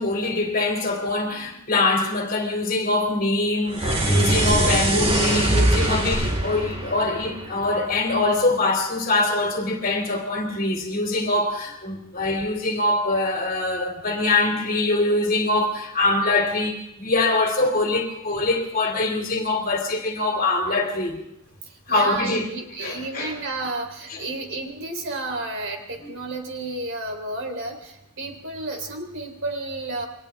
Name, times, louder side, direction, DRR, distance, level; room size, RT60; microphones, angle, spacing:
voice 1, 0.0-21.2 21.9-22.5 22.8-23.3 24.1-24.2 26.0-26.1, left 2 dB, 40° left, 3.4 m, -23 dB
sound 1, 3.7-8.1, right 1 dB, 30° right, 4.7 m, -22 dB
voice 2, 21.9-30.0, right 2 dB, 60° right, 4.0 m, -32 dB
29.5 x 24.0 x 3.7 m
head